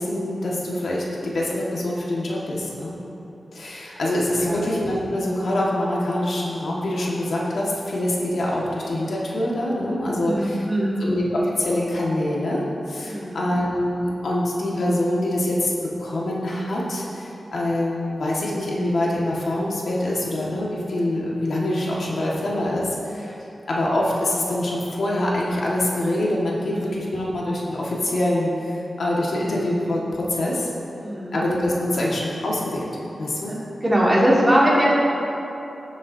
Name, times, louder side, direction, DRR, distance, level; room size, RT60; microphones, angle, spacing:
voice 1, 0.0-3.0 3.5-10.6 11.0-12.6 12.9-15.7 16.0-23.3 23.7-30.7 31.3-32.9 33.2-33.5, left 1 dB, 70° left, -5 dB, 1.7 m, -25 dB
voice 2, 9.8-11.0 13.0-13.5 26.7-26.8 31.0-31.4 33.4-33.5 33.8-34.9, equal, 20° right, -6 dB, 2.4 m, -21 dB
17.0 x 7.2 x 2.8 m, 2.9 s
wide cardioid pair, 100°, 0 cm